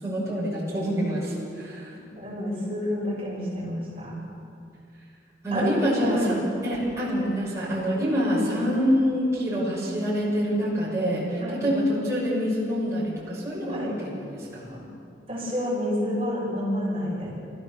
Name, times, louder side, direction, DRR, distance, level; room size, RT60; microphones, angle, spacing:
voice 1, 0.0-1.9 5.4-6.4 6.6-14.9, equal, 15° right, -9 dB, 7.2 m, -26 dB
voice 2, 2.1-4.1 5.5-5.7 6.1-6.3 11.4-11.6 13.7-13.9 15.3-17.3, equal, 30° right, -7 dB, 7.4 m, -29 dB
28.5 x 15.5 x 7.2 m, 2.4 s
head